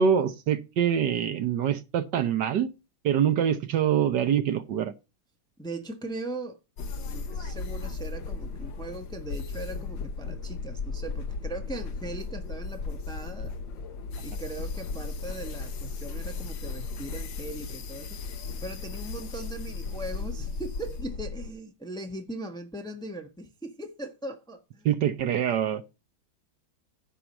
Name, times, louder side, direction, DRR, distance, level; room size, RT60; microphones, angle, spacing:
voice 1, 0.0-2.7 3.0-4.9 24.8-25.8, right 8 dB, 65° right, 1.4 m, -25 dB
voice 2, 5.6-6.6 7.0-13.5 14.2-18.2 18.6-24.9, right 2 dB, 5° left, 1.0 m, -39 dB
sound 1, 6.8-21.5, left 4 dB, 70° left, 1.7 m, -36 dB
10.0 x 4.7 x 7.1 m
omnidirectional pair, 2.1 m